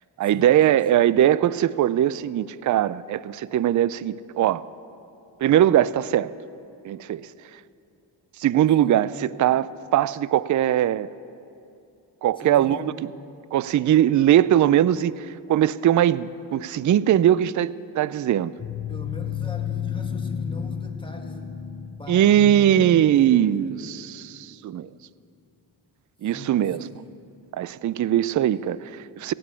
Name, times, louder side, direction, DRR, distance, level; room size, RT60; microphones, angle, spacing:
voice 1, 0.2-4.6 5.4-6.3 6.8-7.3 8.4-11.1 12.2-12.9 13.5-18.5 22.1-24.9 26.2-26.9 27.5-29.3, right 11 dB, 40° right, 19 dB, 0.4 m, -21 dB
voice 2, 12.4-13.0 18.9-21.7 22.0-23.8 26.2-27.0, left 1 dB, 10° left, 2 dB, 2.0 m, -40 dB
sound 1, 18.6-23.7, left 8 dB, 30° left, 0.9 m, -32 dB
16.5 x 7.9 x 8.3 m, 2.6 s
supercardioid pair, 50°, 47 cm